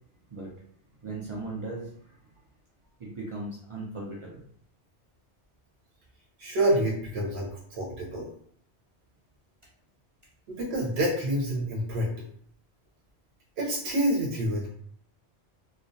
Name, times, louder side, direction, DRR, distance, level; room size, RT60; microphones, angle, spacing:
voice 1, 1.0-2.1 3.0-4.4, right 2 dB, 50° right, -4 dB, 0.3 m, -37 dB
voice 2, 6.4-8.3 10.5-12.1 13.6-14.7, right 1 dB, 75° right, -3 dB, 0.9 m, -27 dB
2.2 x 2.1 x 2.6 m, 0.63 s
omnidirectional pair, 1.1 m